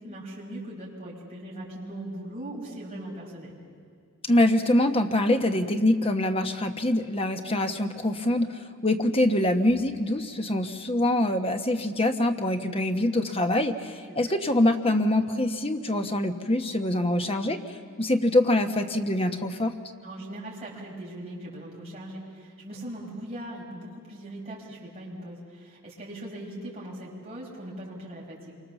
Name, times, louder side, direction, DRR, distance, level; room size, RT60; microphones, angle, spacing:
voice 1, 0.0-3.6 14.1-14.4 20.0-28.6, right 1 dB, 30° right, -5 dB, 5.6 m, -40 dB
voice 2, 4.2-17.6 18.0-19.7, left 1 dB, 25° left, 6 dB, 1.2 m, -24 dB
27.5 x 24.5 x 7.1 m, 2.2 s
head